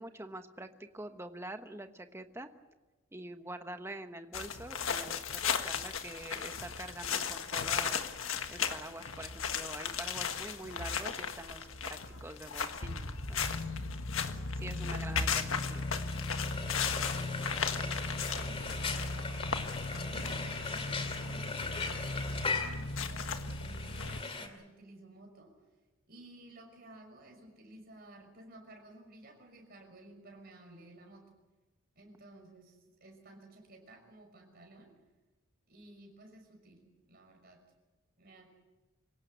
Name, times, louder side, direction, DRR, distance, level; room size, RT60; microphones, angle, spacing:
voice 1, 0.0-2.5 3.1-8.1 8.5-13.6 14.5-15.9 22.5-22.6, right 1 dB, 10° right, 7 dB, 1.2 m, -45 dB
sound 1, 4.3-24.2, left 5 dB, 80° left, 1.5 m, -36 dB
voice 2, 14.6-16.2 16.8-17.9 18.3-19.8 20.1-21.7 22.3-25.5 26.1-31.3 32.0-34.9 35.7-37.6 38.2-38.5, right 2 dB, 45° right, 3 dB, 5.9 m, -55 dB
Frying (food), 15.4-24.5, left 4 dB, 30° left, 2.3 m, -39 dB
26.0 x 17.0 x 8.2 m, 1.1 s
head